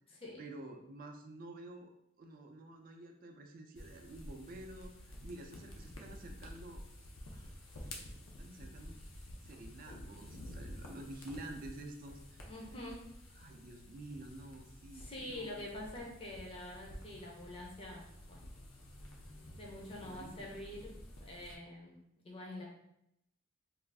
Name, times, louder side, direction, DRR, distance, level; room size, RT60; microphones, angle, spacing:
voice 1, 0.1-1.9 2.2-6.8 7.3-9.0 9.4-12.4 13.4-15.7 20.0-20.9, right 1 dB, 45° right, 4 dB, 0.4 m, -50 dB
sound 1, 3.8-21.5, left 1 dB, 85° left, 0.6 m, -51 dB
voice 2, 12.4-13.0 14.9-18.4 19.6-20.9 21.2-22.0 22.2-22.6, left 1 dB, 30° left, -3 dB, 0.5 m, -46 dB
2.5 x 2.3 x 3.3 m, 0.79 s
head